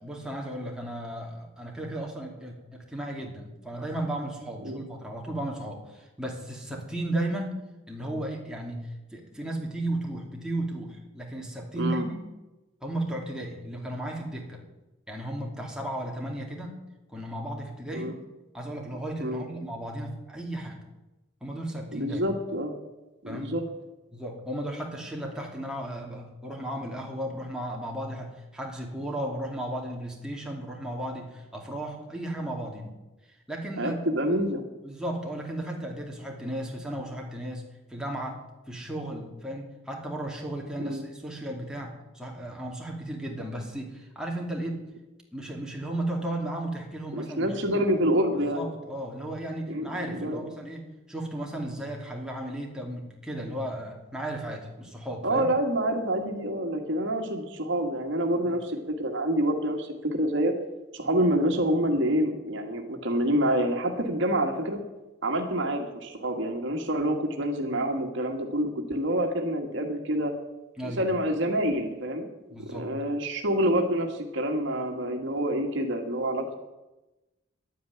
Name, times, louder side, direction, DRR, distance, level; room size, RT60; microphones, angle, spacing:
voice 1, 0.0-7.6 7.9-12.3 12.8-14.6 15.1-16.7 17.1-18.2 18.5-20.8 21.4-22.2 23.2-23.5 24.1-32.9 33.5-34.0 34.8-37.6 37.9-38.4 38.7-44.9 45.3-47.9 48.5-55.5 61.0-61.2 70.8-71.0 72.5-72.9, right 1 dB, 5° right, -1 dB, 2.7 m, -35 dB
voice 2, 21.9-22.7 23.2-23.6 33.8-34.6 40.8-41.0 47.1-48.7 49.7-50.5 55.2-60.5 60.9-64.8 65.2-70.3 70.8-72.3 72.7-76.5, right 1 dB, 65° right, 3 dB, 1.8 m, -27 dB
11.5 x 9.4 x 9.6 m, 1.0 s
head